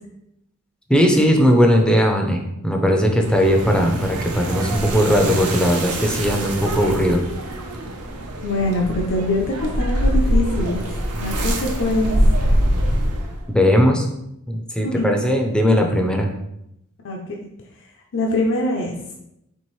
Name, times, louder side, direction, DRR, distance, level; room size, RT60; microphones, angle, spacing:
voice 1, 0.9-7.2 13.5-14.1 14.5-16.3, equal, 5° left, 2 dB, 0.5 m, -18 dB
sound 1, 3.1-13.5, equal, 85° right, 0.8 m, -23 dB
voice 2, 8.4-10.8 11.2-12.2 14.8-15.1 17.0-17.4 18.1-19.0, left 2 dB, 60° left, 0 dB, 0.5 m, -23 dB
4.4 x 3.4 x 3.1 m, 0.81 s
head